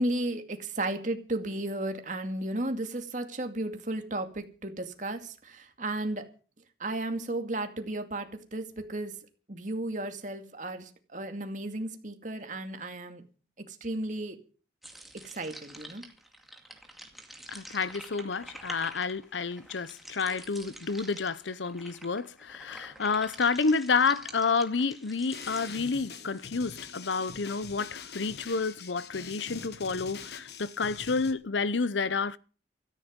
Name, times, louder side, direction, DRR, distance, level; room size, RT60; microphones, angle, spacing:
voice 1, 0.0-6.3 6.8-9.1 9.5-13.2 13.6-14.4 15.2-16.0, right 1 dB, 45° right, 2.3 m, -34 dB
sound 1, 14.8-26.5, right 1 dB, ahead, 2.2 m, -48 dB
voice 2, 17.5-32.4, left 4 dB, 80° left, 0.8 m, -30 dB
sound 2, 25.3-31.3, left 6 dB, 60° left, 1.5 m, -44 dB
17.0 x 14.0 x 5.3 m
head